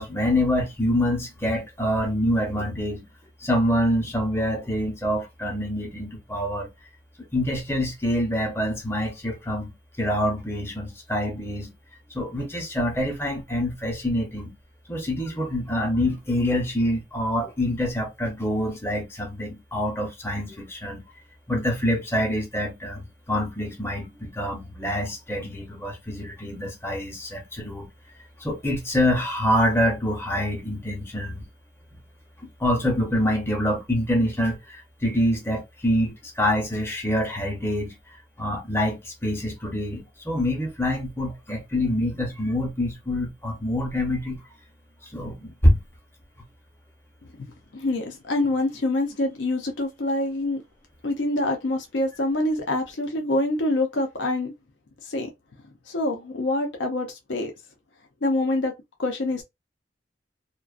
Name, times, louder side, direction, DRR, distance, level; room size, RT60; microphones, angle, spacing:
voice 1, 0.0-3.1 3.4-6.7 7.3-11.7 12.1-14.5 14.9-21.0 21.5-27.9 28.4-31.5 32.4-38.0 38.4-44.4 45.1-45.8, left 1 dB, 15° left, 0.7 m, -26 dB
voice 2, 47.7-50.6 51.0-54.5 55.0-55.3 55.9-57.5 58.2-58.7 59.0-59.4, left 2 dB, 70° left, 0.6 m, -25 dB
2.4 x 2.2 x 2.4 m
head